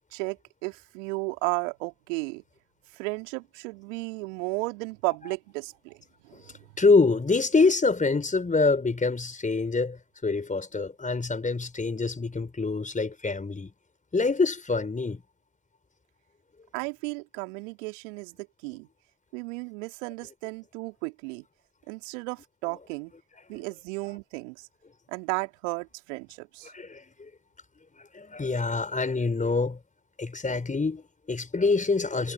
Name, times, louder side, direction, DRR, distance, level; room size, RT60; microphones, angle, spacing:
voice 1, 0.1-2.4 2.9-6.0 6.2-6.4 16.7-18.4 18.6-18.9 19.3-21.4 21.9-23.1 23.5-24.7 25.1-26.7, right 29 dB, 70° right, 3.2 m, -34 dB
voice 2, 6.8-13.7 14.1-15.2 26.7-27.3 28.1-29.8 30.2-32.3, left 3 dB, 20° left, 5.0 m, -25 dB
figure-of-eight pair, 60°, 40 cm